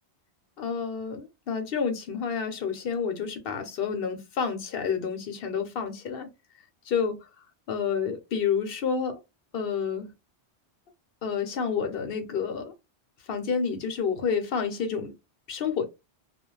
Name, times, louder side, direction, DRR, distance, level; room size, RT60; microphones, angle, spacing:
voice 1, 0.6-6.3 6.9-7.2 7.7-9.2 9.5-10.1 11.2-12.7 13.3-15.1 15.5-15.8, left 6 dB, 60° left, 0.9 m, -29 dB
2.4 x 2.1 x 3.0 m
omnidirectional pair, 1.2 m